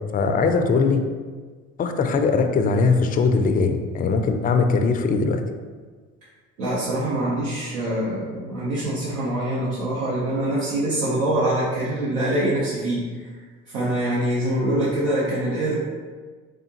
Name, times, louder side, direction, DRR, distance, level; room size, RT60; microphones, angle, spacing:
voice 1, 0.1-1.0 1.8-5.4 14.7-14.8, left 4 dB, 25° left, 6 dB, 0.4 m, -20 dB
voice 2, 6.6-13.3 13.7-15.8, right 1 dB, 80° right, -7 dB, 0.8 m, -24 dB
3.6 x 3.4 x 2.8 m, 1.5 s
hypercardioid pair, 60°, 36 cm